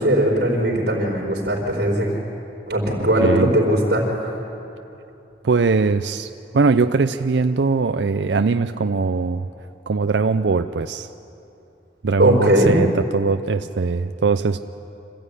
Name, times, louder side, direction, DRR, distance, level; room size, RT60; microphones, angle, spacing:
voice 1, 0.0-2.1 2.7-4.3 12.2-12.8, right 1 dB, 65° right, -4 dB, 4.7 m, -19 dB
voice 2, 3.0-3.5 5.4-9.5 9.9-11.1 12.0-14.6, right 4 dB, 85° right, 10 dB, 0.5 m, -21 dB
26.0 x 15.0 x 9.9 m, 2.8 s
head